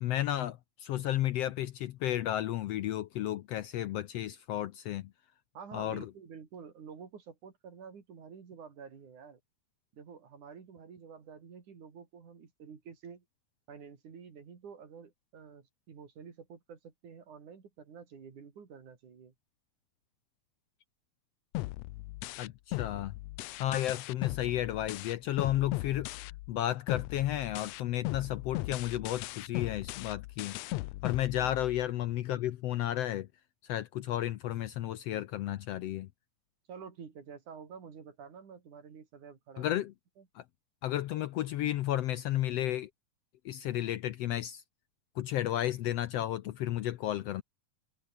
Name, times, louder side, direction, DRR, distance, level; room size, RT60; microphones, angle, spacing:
voice 1, 0.0-5.1 5.7-6.1 22.4-23.1 23.6-26.1 26.5-30.6 31.0-33.3 33.6-36.1 39.6-39.9 40.3-40.4 40.8-42.9 43.4-44.6 45.2-47.4, left 13 dB, 70° left, 1.6 m, -33 dB
voice 2, 5.5-9.4 9.9-13.2 13.7-19.3 31.4-31.6 36.7-39.8 40.2-40.3, right 6 dB, 75° right, 4.9 m, -49 dB
sound 1, 21.5-26.6 26.9-31.9, left 20 dB, 85° left, 1.4 m, -38 dB
omnidirectional pair, 3.5 m